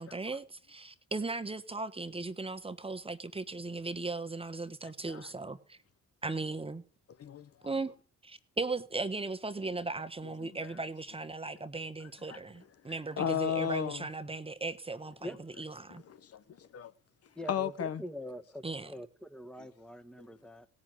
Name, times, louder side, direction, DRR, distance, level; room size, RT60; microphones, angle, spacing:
voice 1, 0.0-5.8 6.2-6.8 7.6-7.9 8.2-16.0 18.6-18.9, right 3 dB, 20° right, 1.3 m, -37 dB
voice 2, 4.8-5.3 7.2-7.5 10.4-10.7 12.3-12.4 13.2-14.1 16.1-16.9 17.5-18.0 19.6-19.7 20.2-20.3, left 8 dB, 55° left, 1.0 m, -35 dB
voice 3, 17.3-20.7, equal, 5° left, 1.6 m, -43 dB
17.0 x 6.4 x 9.4 m
cardioid pair, 90°, 30 cm